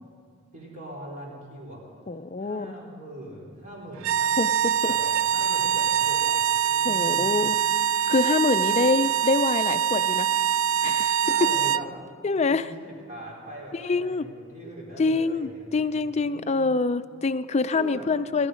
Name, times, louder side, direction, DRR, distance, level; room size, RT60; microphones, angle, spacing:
voice 1, 0.5-1.8 2.4-4.2 4.8-6.4 6.7-7.2 11.2-11.9 12.4-15.9 16.2-16.7 17.7-18.0, right 1 dB, 40° right, -4 dB, 4.1 m, -41 dB
voice 2, 2.1-2.7 4.2-4.7 6.8-7.6 8.1-10.3 10.8-11.2 12.2-12.6 13.7-14.2 15.0-18.5, left 3 dB, 35° left, 12 dB, 0.4 m, -25 dB
sound 1, 4.0-11.9, right 10 dB, 85° right, 0.3 m, -24 dB
18.5 x 12.0 x 5.1 m, 2.2 s
head